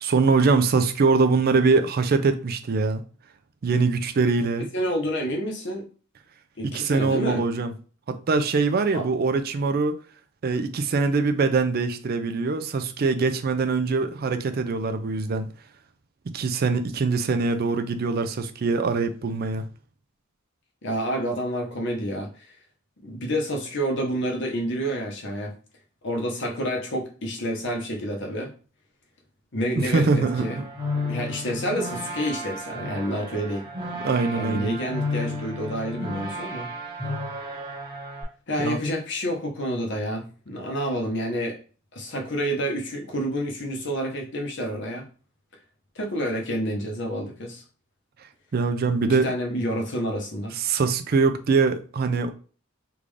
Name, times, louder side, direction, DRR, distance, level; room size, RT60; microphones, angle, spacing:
voice 1, 0.0-3.0 3.6-4.7 6.6-7.7 8.1-10.0 10.4-15.5 16.3-19.7 29.8-30.6 34.0-34.8 38.6-38.8 48.5-49.3 50.6-52.3, right 4 dB, 45° right, 0.4 m, -23 dB
voice 2, 4.6-5.9 6.6-7.4 8.9-9.1 20.8-22.3 23.0-25.5 26.0-28.5 29.5-30.6 31.0-33.7 34.3-36.7 38.5-41.6 41.9-45.0 46.0-47.6 49.2-50.6, equal, 60° left, 0.9 m, -28 dB
sound 1, 30.2-38.2, left 1 dB, 25° right, 1.2 m, -33 dB
3.5 x 2.5 x 3.2 m
head